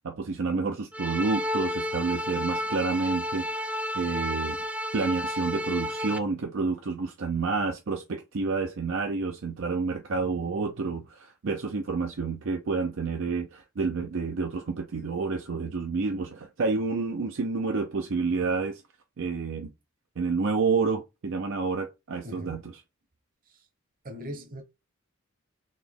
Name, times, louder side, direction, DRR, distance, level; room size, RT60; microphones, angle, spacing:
voice 1, 0.0-4.6 4.9-18.8 19.2-19.7 20.2-22.7, right 4 dB, 65° right, 0.5 m, -29 dB
sound 1, 0.9-6.2, equal, 5° right, 0.3 m, -31 dB
voice 2, 22.2-22.7 23.5-23.7 24.0-24.6, equal, 40° right, 1.0 m, -40 dB
4.2 x 2.9 x 3.5 m
head